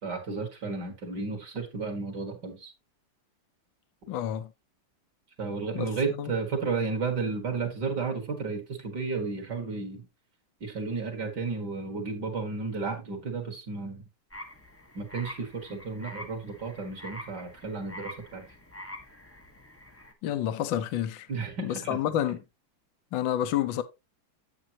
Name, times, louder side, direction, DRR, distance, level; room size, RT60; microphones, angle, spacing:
voice 1, 0.0-2.7 5.4-10.1 10.6-14.0 14.9-18.5 21.3-22.0, right 4 dB, 50° right, 2.4 m, -33 dB
voice 2, 4.1-4.5 5.7-6.3 20.2-21.3 21.6-22.4 23.1-23.8, left 11 dB, 65° left, 1.5 m, -29 dB
sound 1, 14.3-20.1, left 1 dB, 10° left, 0.7 m, -45 dB
8.9 x 8.7 x 2.8 m
omnidirectional pair, 2.4 m